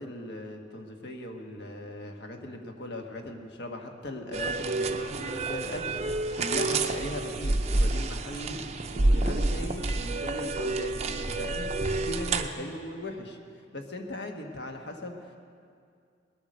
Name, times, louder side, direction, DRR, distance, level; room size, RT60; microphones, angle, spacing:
voice 1, 0.0-13.4 13.7-15.4, left 1 dB, 60° left, 3 dB, 1.4 m, -39 dB
sound 1, 4.3-12.5, right 2 dB, 35° right, 0.6 m, -28 dB
20.0 x 8.6 x 6.3 m, 2.3 s
head